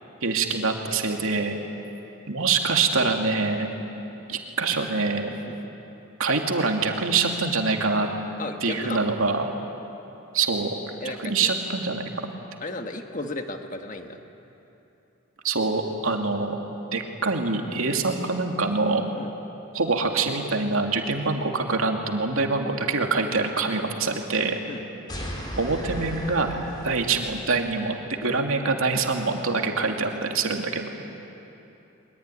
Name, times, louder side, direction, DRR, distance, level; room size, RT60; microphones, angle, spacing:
voice 1, 0.2-1.6 2.3-3.7 4.3-5.3 6.2-8.1 8.6-9.5 10.3-10.8 11.0-12.0 15.4-16.6 16.9-19.0 19.7-24.6 25.6-26.5 26.8-28.0 28.2-30.9, right 4 dB, 80° right, 2 dB, 2.6 m, -25 dB
voice 2, 8.4-9.1 11.0-11.3 12.6-14.2 19.1-19.3 24.7-24.8, left 2 dB, 40° left, 4 dB, 1.6 m, -34 dB
sound 1, 25.1-27.7, equal, 20° left, 3.9 m, -36 dB
23.0 x 22.0 x 10.0 m, 2.9 s
head